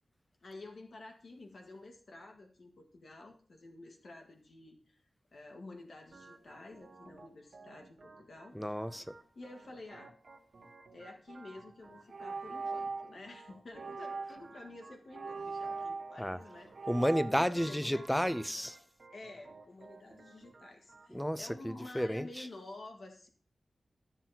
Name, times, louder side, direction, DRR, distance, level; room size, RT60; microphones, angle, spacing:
voice 1, 0.4-5.0 5.3-8.5 9.3-10.1 10.9-16.7 17.3-18.0 19.1-23.3, left 2 dB, 70° left, 1.7 m, -50 dB
Organ, 6.1-21.1, right 3 dB, 55° right, 1.3 m, -56 dB
voice 2, 8.5-9.2 16.2-16.4 16.9-18.8 21.1-22.5, equal, 5° left, 0.5 m, -32 dB
sound 1, 11.3-11.5 12.1-13.2 13.8-14.5 15.1-16.4 16.8-17.3, right 4 dB, 85° right, 0.6 m, -40 dB
12.5 x 7.4 x 2.8 m
wide cardioid pair, 100°, 0 cm